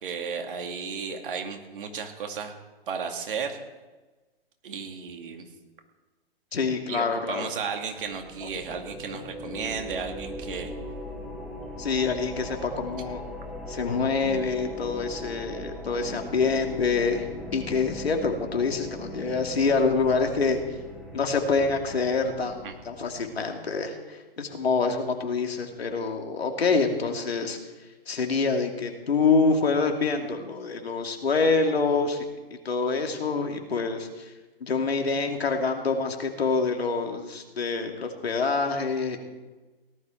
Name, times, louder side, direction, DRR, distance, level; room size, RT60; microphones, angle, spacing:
voice 1, 0.0-2.5 2.9-3.6 4.6-5.4 6.9-10.7 22.6-22.8, right 6 dB, 60° right, 4 dB, 2.4 m, -34 dB
voice 2, 6.5-7.5 11.8-13.2 13.7-17.3 17.5-20.6 21.1-27.6 28.1-32.3 32.6-34.1 34.6-39.2, left 4 dB, 80° left, 3 dB, 2.6 m, -26 dB
sound 1, 8.0-23.4, left 1 dB, ahead, 2.2 m, -39 dB
18.0 x 12.0 x 4.5 m, 1.2 s
hypercardioid pair, 140°, 30 cm